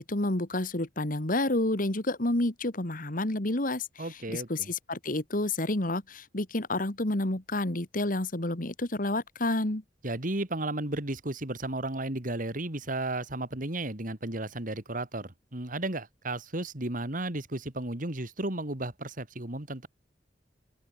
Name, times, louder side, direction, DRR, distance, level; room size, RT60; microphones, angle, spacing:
voice 1, 0.0-3.9 4.3-9.8, left 2 dB, 50° left, 2.3 m, -29 dB
voice 2, 4.0-4.7 10.0-19.9, right 2 dB, 50° right, 2.8 m, -34 dB
head